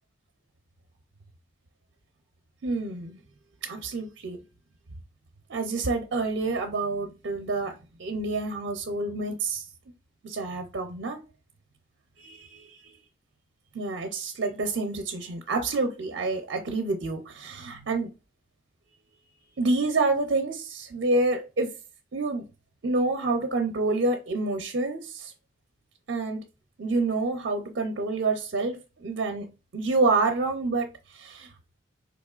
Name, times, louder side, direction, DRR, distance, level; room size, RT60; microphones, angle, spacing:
voice 1, 2.6-3.2 3.6-4.4 5.5-7.7 8.0-9.7 10.2-11.2 12.2-12.8 13.7-18.1 19.6-21.7 22.1-22.5 22.8-25.3 26.1-26.4 26.8-29.5 29.7-31.5, right 3 dB, 65° right, 0.5 m, -28 dB
4.0 x 3.0 x 2.3 m
head